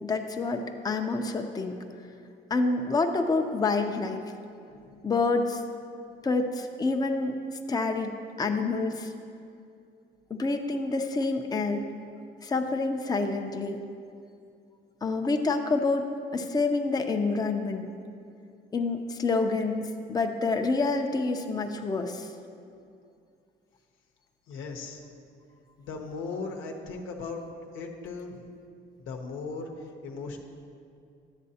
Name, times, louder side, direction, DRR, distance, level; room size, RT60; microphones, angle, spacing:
voice 1, 0.0-1.8 2.5-4.2 5.0-5.6 6.2-7.3 7.7-8.1 8.4-9.1 10.3-11.9 12.4-13.8 15.0-17.9 18.7-22.3, left 3 dB, 20° left, 5 dB, 0.5 m, -27 dB
voice 2, 4.7-5.0 24.5-25.0 25.8-27.4 27.7-28.5 29.0-30.4, left 4 dB, 90° left, 2 dB, 0.8 m, -38 dB
10.5 x 7.5 x 2.8 m, 2.4 s
cardioid pair, 90°, 20 cm